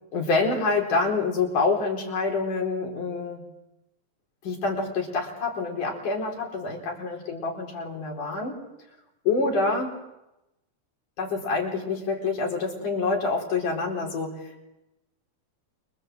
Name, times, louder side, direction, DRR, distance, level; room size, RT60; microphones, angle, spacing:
voice 1, 0.1-3.4 4.4-8.6 9.3-10.0 11.2-14.6, left 3 dB, 65° left, 1 dB, 5.9 m, -27 dB
29.0 x 24.5 x 8.0 m, 0.91 s
omnidirectional pair, 4.0 m